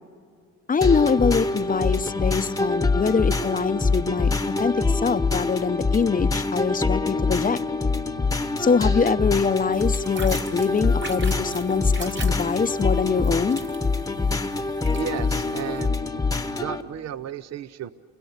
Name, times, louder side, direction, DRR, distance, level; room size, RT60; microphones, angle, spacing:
voice 1, 0.7-4.3 4.6-7.6 8.6-13.6, left 5 dB, 30° left, 12 dB, 0.7 m, -24 dB
sound 1, 0.8-16.8, left 3 dB, 10° left, 1.0 m, -25 dB
sound 2, 9.7-15.9, right 3 dB, 40° right, 1.9 m, -40 dB
voice 2, 14.9-16.0 16.5-17.9, right 9 dB, 60° right, 14 dB, 0.7 m, -33 dB
29.0 x 21.0 x 8.1 m, 2.1 s
cardioid pair, 90°, 30 cm